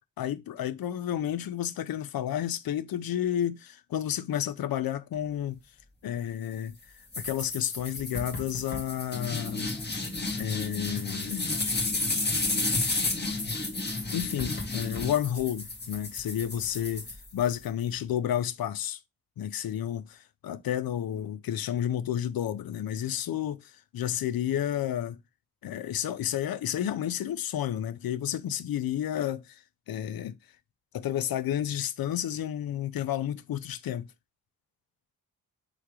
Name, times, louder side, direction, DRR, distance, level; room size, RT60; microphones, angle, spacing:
voice 1, 0.2-5.6 6.0-6.8 7.2-9.7 10.4-11.5 14.1-17.1 17.3-19.0 19.4-25.2 25.6-29.6 29.9-30.3 30.9-34.1, left 10 dB, 80° left, 0.6 m, -31 dB
sound 1, 7.1-17.7, left 2 dB, 30° left, 1.7 m, -32 dB
3.5 x 3.1 x 4.8 m
cardioid pair, 70°, 35 cm